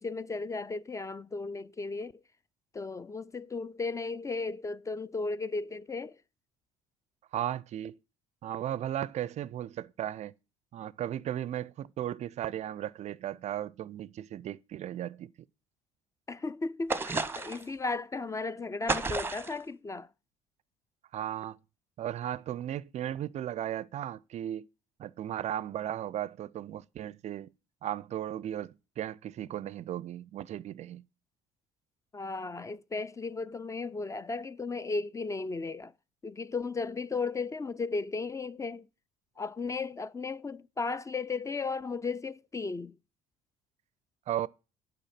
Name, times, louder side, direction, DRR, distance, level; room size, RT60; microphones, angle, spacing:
voice 1, 0.0-2.1 2.7-6.2 16.3-20.1 32.1-35.9 36.2-38.9 39.4-43.0, left 4 dB, 20° left, 0.4 m, -35 dB
voice 2, 7.3-8.0 8.4-10.3 10.7-15.3 21.1-21.6 22.0-24.7 25.0-27.5 27.8-31.0 44.3-44.5, right 11 dB, 45° right, 0.4 m, -36 dB
sound 1, 16.9-17.7 18.9-19.6, right 3 dB, 15° right, 0.8 m, -32 dB
8.9 x 4.5 x 7.3 m
hypercardioid pair, 60°, 16 cm